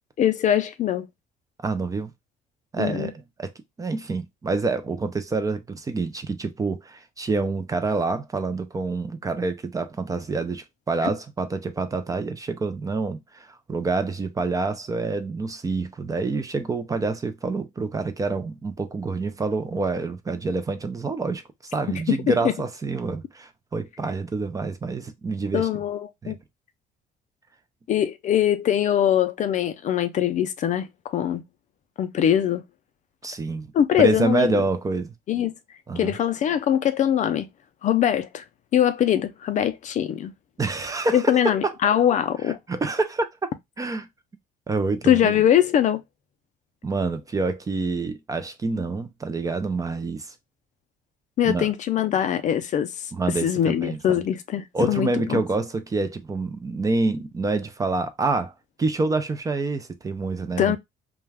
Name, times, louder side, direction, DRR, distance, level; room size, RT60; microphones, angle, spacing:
voice 1, 0.2-1.1 2.8-3.1 22.3-22.4 25.5-26.4 27.9-31.4 32.0-32.6 33.7-34.6 35.3-35.5 36.0-37.5 37.8-38.4 38.7-40.3 41.1-42.6 45.1-46.0 51.4-53.1 53.4-55.4 60.6-60.8, left 10 dB, 45° left, 0.4 m, -22 dB
voice 2, 1.6-2.1 2.7-3.5 3.8-21.4 21.7-25.8 26.2-26.4 33.2-33.7 34.0-35.1 35.9-36.2 40.6-41.7 42.7-43.3 43.8-44.1 44.7-45.3 46.8-50.3 51.4-51.7 53.1-54.2 54.7-60.8, right 3 dB, 20° right, 0.4 m, -27 dB
2.3 x 2.2 x 3.2 m
cardioid pair, 110°, 17 cm